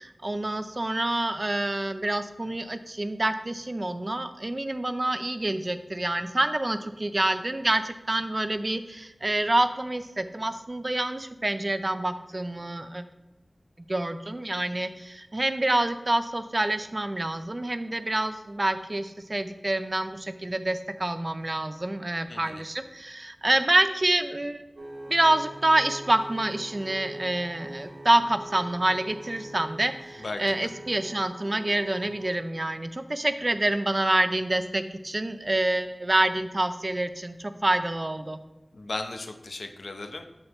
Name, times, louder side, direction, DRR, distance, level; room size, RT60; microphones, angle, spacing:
voice 1, 0.0-13.0 13.9-24.6 25.1-38.4, right 1 dB, 40° right, 10 dB, 0.5 m, -27 dB
voice 2, 22.3-22.6 30.2-30.7 38.7-40.2, left 2 dB, 80° left, 6 dB, 0.7 m, -36 dB
sound 1, 24.8-32.3, right 1 dB, 85° right, 1.7 m, -43 dB
6.9 x 6.5 x 3.0 m, 1.1 s
wide cardioid pair, 55°, 0 cm